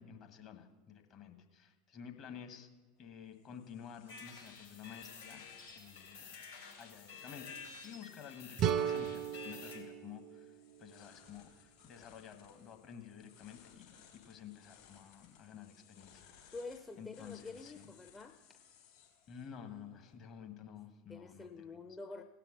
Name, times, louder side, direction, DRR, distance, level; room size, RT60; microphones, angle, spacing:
voice 1, 0.0-2.7 3.0-5.4 5.7-6.3 6.8-7.6 7.8-16.5 17.0-17.9 19.3-21.8, left 8 dB, 40° left, 5 dB, 1.4 m, -51 dB
sound 1, 3.0-20.1, left 8 dB, 60° left, 3.4 m, -64 dB
sound 2, 4.1-9.8, left 5 dB, 80° left, 3.7 m, -51 dB
sound 3, 8.6-11.5, right 9 dB, 40° right, 0.5 m, -36 dB
voice 2, 16.5-18.4 21.1-22.2, left 3 dB, 15° left, 5 dB, 0.6 m, -47 dB
17.5 x 5.8 x 6.4 m, 1.3 s
figure-of-eight pair, 80°, 0 cm